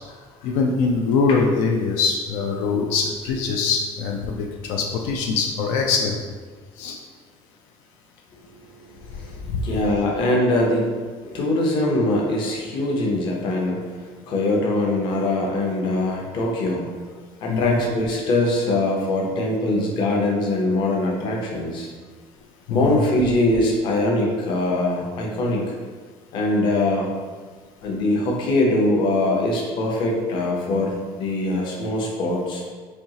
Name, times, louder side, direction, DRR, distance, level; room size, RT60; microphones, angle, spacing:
voice 1, 0.4-6.2 6.8-7.0 9.5-9.6 17.5-17.8 22.7-23.0, left 4 dB, 85° left, 1 dB, 0.4 m, -23 dB
voice 2, 9.1-16.9 17.4-21.9 22.7-25.7 26.3-27.1 27.8-32.6, left 1 dB, 45° left, -1 dB, 0.7 m, -22 dB
4.3 x 2.7 x 2.8 m, 1.5 s
cardioid pair, 175°, 12 cm